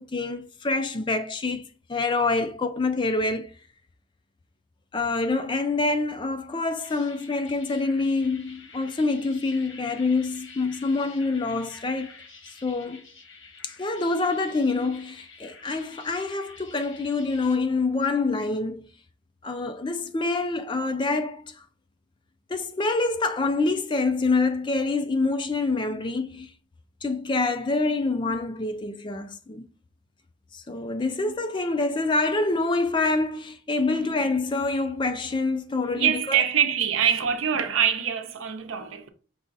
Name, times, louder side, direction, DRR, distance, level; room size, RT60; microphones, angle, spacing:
voice 1, 0.0-1.6 1.9-3.5 4.9-12.1 12.6-13.0 13.6-18.9 19.4-21.6 22.5-26.5 27.0-29.7 30.5-36.4, left 3 dB, 25° left, 0.4 m, -26 dB
sound 1, 6.5-17.6, left 4 dB, 80° left, 1.2 m, -49 dB
voice 2, 35.9-39.1, right 8 dB, 85° right, 0.7 m, -24 dB
5.4 x 2.3 x 3.9 m
head